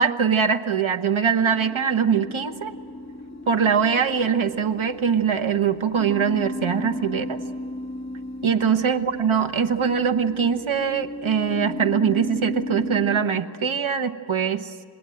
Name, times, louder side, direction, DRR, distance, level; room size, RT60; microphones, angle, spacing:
voice 1, 0.0-2.7 3.5-7.4 8.4-14.7, right 7 dB, 75° right, 9 dB, 1.2 m, -22 dB
sound 1, 1.4-13.2, left 1 dB, 35° left, 2.4 m, -35 dB
27.5 x 20.5 x 7.8 m, 2.1 s
wide cardioid pair, 50°, 49 cm